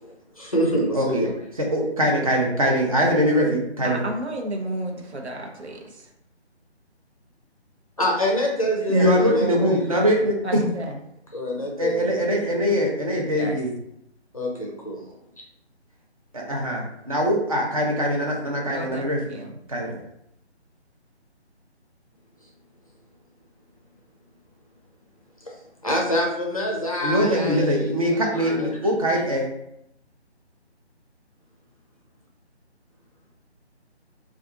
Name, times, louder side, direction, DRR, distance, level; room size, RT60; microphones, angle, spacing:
voice 1, 0.0-1.3 8.0-10.0 11.3-12.3 14.3-15.0 25.4-25.6 25.8-28.8, equal, 35° left, -2 dB, 0.5 m, -26 dB
voice 2, 1.7-4.0 8.9-10.6 11.8-13.7 16.3-19.2 19.7-20.0 27.0-29.5, equal, 30° right, -1 dB, 0.6 m, -22 dB
voice 3, 3.8-6.1 10.4-11.0 13.4-13.6 18.7-19.6, right 1 dB, 70° right, 2 dB, 0.8 m, -32 dB
2.5 x 2.4 x 3.6 m, 0.77 s
figure-of-eight pair, 155°, 34 cm